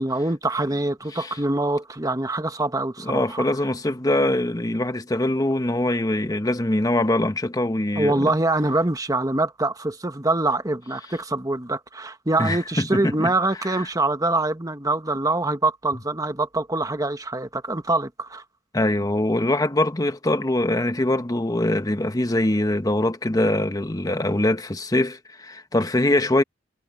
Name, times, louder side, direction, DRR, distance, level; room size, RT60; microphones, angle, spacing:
voice 1, 0.0-3.4 8.0-18.4, right 2 dB, 20° right, 1.4 m, -24 dB
voice 2, 3.0-8.4 12.4-13.3 13.6-13.9 18.7-26.4, left 1 dB, 20° left, 1.1 m, -23 dB
head